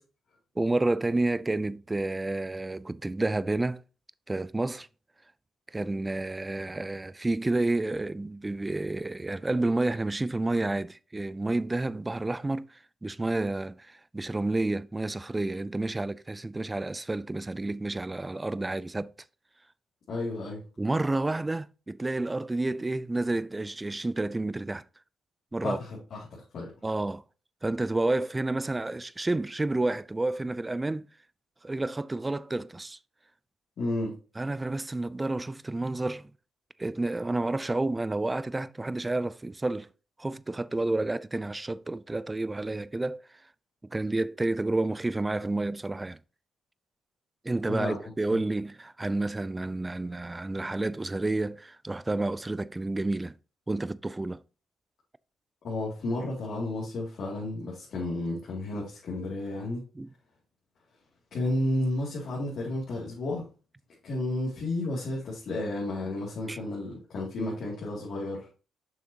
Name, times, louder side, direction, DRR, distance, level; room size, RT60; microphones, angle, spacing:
voice 1, 0.6-3.8 4.3-4.9 5.7-19.1 20.8-24.8 25.5-25.8 26.8-27.2 27.6-31.1 31.6-33.0 34.4-36.3 36.8-39.9 40.2-43.2 43.9-46.2 47.4-53.3 53.7-54.4 59.9-60.1 66.5-66.6, right 2 dB, 15° right, 0.4 m, -30 dB
voice 2, 20.1-20.6 25.6-26.3 26.5-26.7 33.8-34.1 47.7-48.4 55.6-59.8 61.3-63.4 64.0-68.5, left 2 dB, 60° left, 2.5 m, -32 dB
7.2 x 6.1 x 2.8 m
cardioid pair, 90°, 0 cm